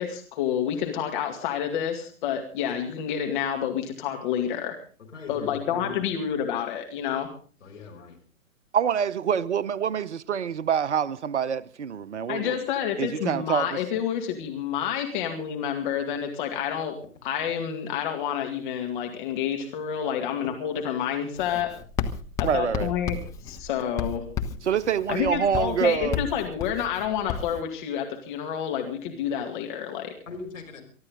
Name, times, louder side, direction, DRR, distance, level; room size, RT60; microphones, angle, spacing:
voice 1, 0.0-4.8 5.3-7.3 12.3-17.0 17.2-21.8 22.4-23.2 23.4-24.3 25.1-30.1, left 9 dB, 35° left, 2.2 m, -29 dB
voice 2, 5.1-6.0 7.6-8.2 30.3-30.8, left 4 dB, 65° left, 5.8 m, -39 dB
voice 3, 8.7-12.6 13.0-13.8 22.4-22.9 24.6-26.2, right 7 dB, 55° right, 0.8 m, -26 dB
Writing, 21.4-27.6, left 7 dB, 10° left, 0.6 m, -33 dB
23.5 x 13.0 x 3.9 m
figure-of-eight pair, 120°, 41 cm